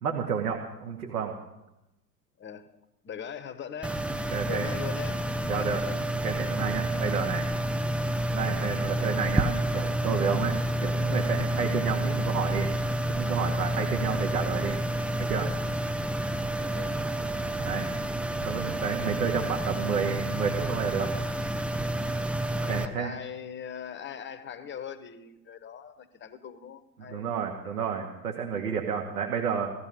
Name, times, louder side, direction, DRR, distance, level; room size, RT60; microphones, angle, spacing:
voice 1, 0.0-1.3 4.3-4.7 5.5-7.5 8.3-10.6 10.8-12.7 13.1-14.8 15.2-15.5 17.6-17.9 18.4-21.1 22.6-23.1 27.0-29.7, right 7 dB, 70° right, 2.0 m, -31 dB
voice 2, 2.4-2.7 3.0-4.1 4.5-6.0 16.6-17.0 22.4-27.4 28.4-28.6, left 8 dB, 25° left, 1.2 m, -41 dB
sound 1, 3.8-22.9, right 1 dB, 5° right, 0.5 m, -29 dB
18.0 x 13.5 x 5.5 m
figure-of-eight pair, 75°, 47 cm